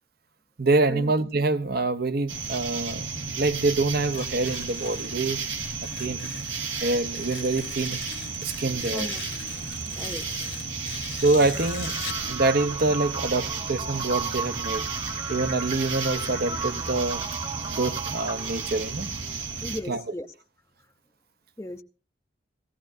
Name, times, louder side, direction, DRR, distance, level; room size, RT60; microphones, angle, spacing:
voice 1, 0.6-5.4 6.0-6.4 6.8-8.0 8.4-9.1 9.7-9.8 11.2-12.0 12.2-14.9 15.3-17.2 17.7-19.1 19.9-20.0, right 3 dB, 50° right, 0.8 m, -26 dB
sound 1, 2.3-19.8, right 5 dB, 75° right, 1.8 m, -33 dB
Tearing, 4.0-12.3, left 10 dB, 70° left, 1.3 m, -42 dB
voice 2, 10.0-10.4 19.6-20.3 21.6-21.8, left 1 dB, 15° left, 0.6 m, -36 dB
sound 2, 11.5-19.5, right 4 dB, 30° right, 1.4 m, -36 dB
18.0 x 16.0 x 2.7 m
head